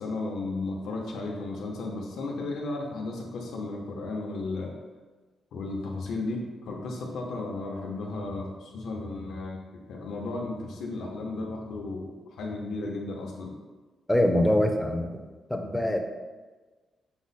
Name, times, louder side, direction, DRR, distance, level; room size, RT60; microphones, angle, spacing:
voice 1, 0.0-4.7 5.5-9.6 9.9-13.5, left 2 dB, 75° left, -1 dB, 0.7 m, -34 dB
voice 2, 14.1-15.2 15.5-16.0, left 1 dB, 5° left, 4 dB, 0.4 m, -24 dB
5.9 x 2.0 x 4.0 m, 1.2 s
wide cardioid pair, 180°, 0 cm